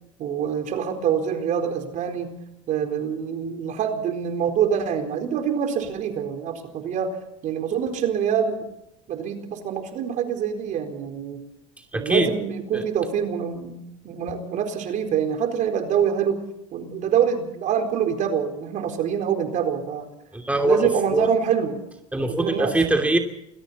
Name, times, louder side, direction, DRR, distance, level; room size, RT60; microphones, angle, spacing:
voice 1, 0.2-2.4 2.7-7.2 7.4-8.6 9.1-11.4 11.9-16.4 16.7-20.1 20.6-21.9 22.3-22.7, right 8 dB, 50° right, 6 dB, 4.2 m, -25 dB
voice 2, 11.9-12.3 12.7-12.8 20.3-21.3 22.1-23.2, right 2 dB, 10° right, 4 dB, 2.8 m, -22 dB
28.5 x 22.0 x 4.2 m, 0.85 s
hypercardioid pair, 80°, 17 cm